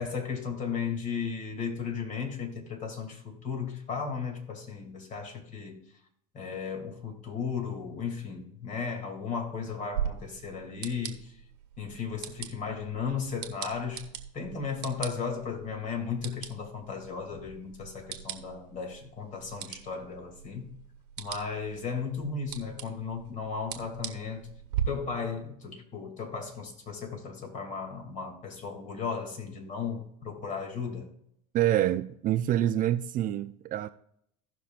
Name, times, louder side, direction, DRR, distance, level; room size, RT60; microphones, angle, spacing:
voice 1, 0.0-5.8 6.3-11.4 11.8-14.1 14.3-20.7 21.2-24.5 24.8-31.1, left 5 dB, 40° left, 2.7 m, -35 dB
sound 1, 9.9-24.8, right 10 dB, 85° right, 1.3 m, -41 dB
voice 2, 31.5-33.9, right 12 dB, 45° right, 0.5 m, -26 dB
17.0 x 5.8 x 2.5 m
hypercardioid pair, 90°, 20 cm